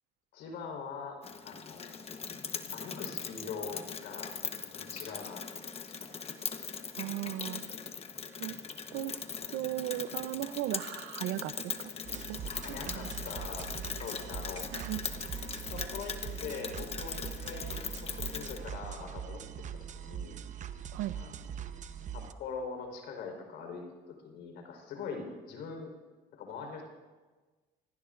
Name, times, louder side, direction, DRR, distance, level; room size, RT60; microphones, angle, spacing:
voice 1, 0.3-1.2 1.4-2.2 2.7-5.7 6.0-6.1 12.5-13.7 14.0-14.8 15.7-19.4 19.9-20.4 21.2-21.3 22.1-25.9 26.3-26.8, left 5 dB, 85° left, 2 dB, 4.4 m, -43 dB
Rain, 1.2-18.6, left 6 dB, 35° left, 1.1 m, -40 dB
voice 2, 7.0-7.6 8.4-8.6 8.9-9.1 9.5-11.9 12.3-12.4 12.9-13.1 14.7-15.0 20.9-21.2, right 14 dB, 85° right, 14 dB, 0.7 m, -36 dB
sound 1, 12.0-22.3, right 8 dB, 45° right, 0.9 m, -42 dB
26.0 x 18.5 x 2.6 m, 1.3 s
cardioid pair, 110°, 17 cm